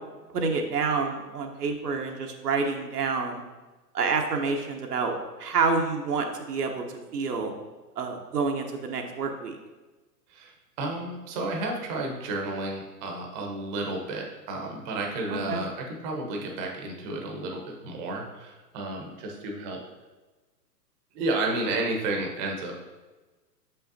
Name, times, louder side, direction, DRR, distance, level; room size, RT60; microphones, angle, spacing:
voice 1, 0.3-3.4 3.9-6.8 7.1-7.5 8.0-9.6 15.3-15.6, right 4 dB, 70° right, 3 dB, 1.0 m, -28 dB
voice 2, 10.3-19.8 21.1-22.7, right 2 dB, 25° right, 1 dB, 0.9 m, -32 dB
6.7 x 5.5 x 2.7 m, 1.2 s
hypercardioid pair, 125°, 49 cm